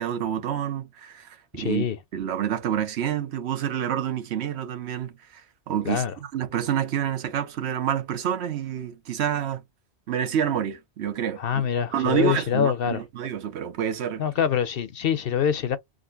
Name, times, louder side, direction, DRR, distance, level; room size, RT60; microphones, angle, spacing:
voice 1, 0.0-1.9 2.1-9.6 10.1-11.7 11.9-14.2, right 9 dB, 75° right, 1.0 m, -28 dB
voice 2, 1.6-2.0 5.9-6.1 11.4-13.0 14.2-15.8, left 8 dB, 60° left, 0.8 m, -25 dB
3.8 x 2.5 x 2.4 m
omnidirectional pair, 1.1 m